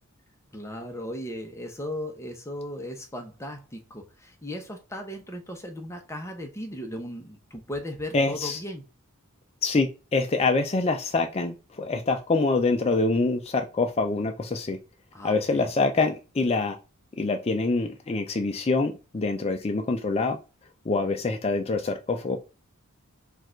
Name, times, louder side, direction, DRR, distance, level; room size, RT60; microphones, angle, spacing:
voice 1, 0.5-8.8 15.1-15.7, left 1 dB, 10° left, 0.8 m, -37 dB
voice 2, 8.1-8.6 9.6-14.8 15.2-16.8 17.2-20.4 20.9-22.4, left 3 dB, 30° left, 0.4 m, -25 dB
4.6 x 2.5 x 4.4 m
head